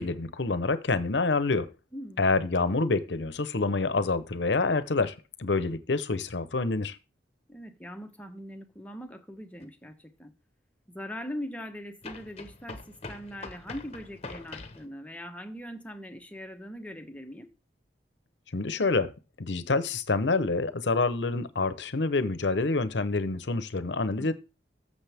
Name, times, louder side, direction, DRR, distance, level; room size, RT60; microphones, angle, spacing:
voice 1, 0.0-1.7 2.2-7.0 18.5-19.1 19.4-24.3, left 3 dB, 80° left, 0.9 m, -27 dB
voice 2, 1.9-2.3 7.5-10.3 10.9-17.5 24.2-24.3, equal, 10° left, 1.1 m, -41 dB
sound 1, 9.6-9.7 12.0-14.9, left 3 dB, 35° left, 1.1 m, -43 dB
13.5 x 6.8 x 3.5 m
head